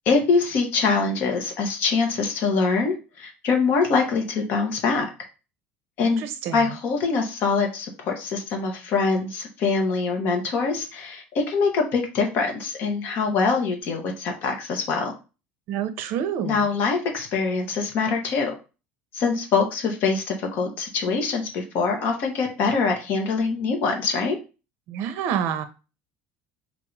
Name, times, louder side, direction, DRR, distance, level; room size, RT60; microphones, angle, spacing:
voice 1, 0.1-5.0 6.0-6.2 6.5-15.1 16.4-18.6 19.1-24.4, left 4 dB, 45° left, 2 dB, 1.1 m, -24 dB
voice 2, 6.0-6.6 15.7-16.7 24.9-25.7, right 8 dB, 55° right, 10 dB, 0.7 m, -28 dB
3.7 x 2.6 x 4.6 m, 0.31 s
cardioid pair, 170°, 5 cm